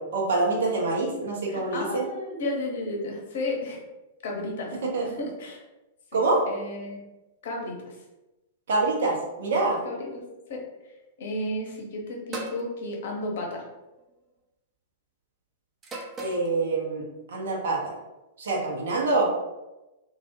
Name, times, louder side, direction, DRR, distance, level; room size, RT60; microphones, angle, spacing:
voice 1, 0.0-2.1 4.8-5.1 6.1-6.4 8.7-9.8 16.2-18.0 18.4-19.3, right 3 dB, 65° right, -1 dB, 0.7 m, -26 dB
voice 2, 1.5-3.8 4.2-5.6 6.1-6.2 6.5-7.0 7.4-8.0 9.8-10.2 10.5-10.6 11.2-13.7, left 1 dB, 65° left, 0 dB, 0.7 m, -33 dB
sound 1, 12.3-12.7 13.8-14.2 15.8-16.5, right 1 dB, 25° right, 0.5 m, -36 dB
2.3 x 2.1 x 2.8 m, 1.0 s
hypercardioid pair, 105°, 0 cm